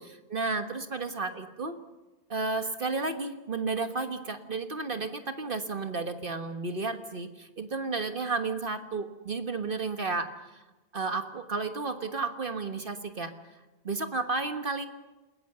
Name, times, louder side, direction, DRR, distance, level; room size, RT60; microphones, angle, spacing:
voice 1, 0.0-1.8 2.3-10.6 10.9-13.3 13.8-14.9, right 3 dB, 55° right, 7 dB, 1.6 m, -32 dB
28.5 x 20.5 x 6.8 m, 1.1 s
omnidirectional pair, 1.1 m